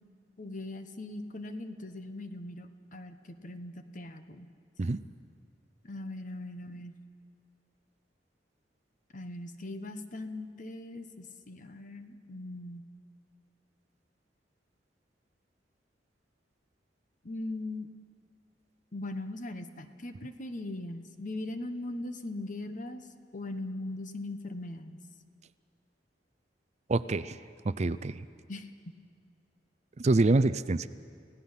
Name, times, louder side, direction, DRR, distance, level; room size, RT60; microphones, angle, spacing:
voice 1, 0.4-4.5 5.8-7.0 9.1-12.9 17.2-17.9 18.9-25.0 28.5-28.7, left 2 dB, 45° left, 8 dB, 1.1 m, -40 dB
voice 2, 26.9-27.4 27.6-28.2 30.0-30.9, right 2 dB, 40° right, 15 dB, 0.5 m, -26 dB
29.5 x 16.5 x 5.7 m, 2.3 s
head